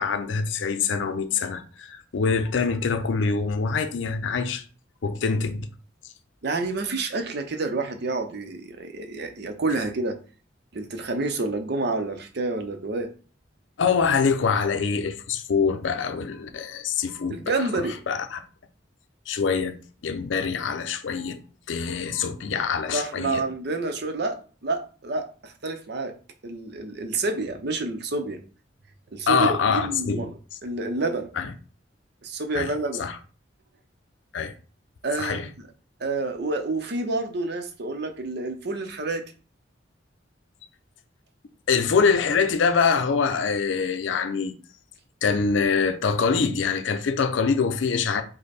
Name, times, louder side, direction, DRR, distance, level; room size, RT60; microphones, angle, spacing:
voice 1, 0.0-4.6 5.0-5.7 13.8-18.4 19.3-19.8 20.0-21.4 21.7-23.4 29.3-30.2 31.4-31.5 32.5-32.7 33.0-33.2 34.3-34.5 35.2-35.5 41.7-44.5 45.2-48.2, left 5 dB, 85° left, 0.5 m, -24 dB
voice 2, 6.4-10.2 10.7-13.1 17.3-18.0 22.2-22.3 22.9-26.1 26.4-28.4 29.1-30.3 30.6-31.3 32.2-33.0 35.0-35.5 36.0-39.2, right 3 dB, 60° right, 0.6 m, -29 dB
5.1 x 2.1 x 4.2 m
head